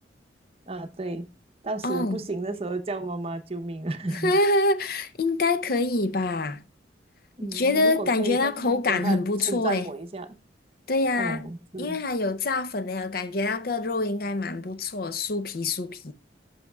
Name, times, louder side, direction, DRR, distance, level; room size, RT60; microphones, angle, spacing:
voice 1, 0.7-1.3 1.6-4.3 7.4-9.2 9.4-10.4 11.2-12.0, right 2 dB, 30° right, 0.8 m, -32 dB
voice 2, 1.8-2.2 4.1-6.6 7.4-9.9 10.9-11.5 11.8-16.1, left 2 dB, 55° left, 0.6 m, -25 dB
11.5 x 6.2 x 2.3 m
head